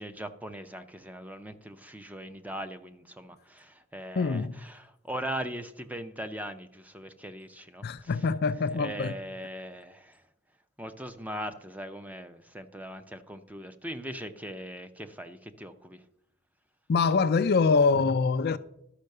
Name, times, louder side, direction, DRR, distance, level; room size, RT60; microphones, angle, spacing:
voice 1, 0.0-8.3 8.6-10.2 10.8-16.1, right 1 dB, 5° right, 0.6 m, -40 dB
voice 2, 4.2-4.6 7.8-9.1 16.9-18.6, left 4 dB, 45° left, 0.4 m, -24 dB
12.0 x 5.5 x 6.6 m
head